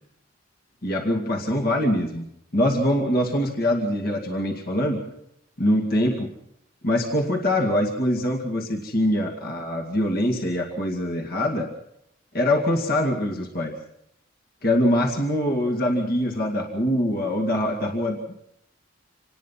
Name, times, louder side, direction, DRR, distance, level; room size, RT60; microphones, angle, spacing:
voice 1, 0.8-2.3 2.5-5.0 5.6-6.3 6.8-11.7 12.3-13.7 14.6-18.3, left 1 dB, 50° left, 2 dB, 2.3 m, -23 dB
26.5 x 19.5 x 5.8 m, 0.79 s
head